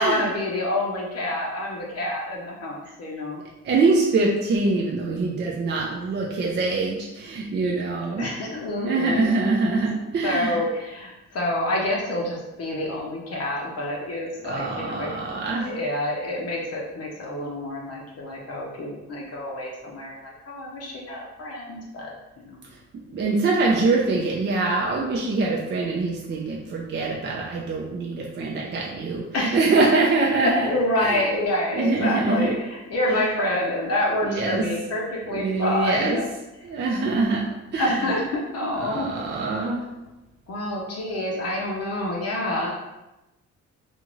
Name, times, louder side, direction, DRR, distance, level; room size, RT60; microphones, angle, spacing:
voice 1, 0.0-3.4 8.2-9.3 10.2-15.1 15.6-22.1 22.5-22.6 29.3-29.7 30.3-36.3 36.6-36.7 37.8-39.1 39.4-39.5 40.5-42.7, left 1 dB, 55° left, -3 dB, 0.7 m, -27 dB
voice 2, 3.6-8.3 8.9-10.6 14.5-15.7 22.9-30.7 31.0-31.2 31.7-32.5 33.1-33.3 34.2-34.7 35.3-36.2 36.6-37.4 37.7-38.1 38.8-39.8, right 3 dB, 35° right, -2 dB, 0.5 m, -24 dB
2.5 x 2.5 x 3.0 m, 0.99 s
cardioid pair, 90°, 30 cm